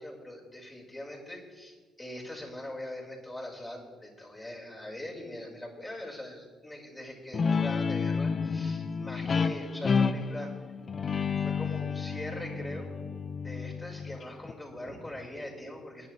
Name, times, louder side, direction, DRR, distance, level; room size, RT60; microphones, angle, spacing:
voice 1, 0.0-10.5 11.4-12.9 13.4-16.1, left 1 dB, 20° left, -4 dB, 5.1 m, -42 dB
Guitar, 7.3-14.5, left 5 dB, 40° left, 0.8 m, -30 dB
21.5 x 10.5 x 3.3 m, 1.5 s
hypercardioid pair, 45°, 0 cm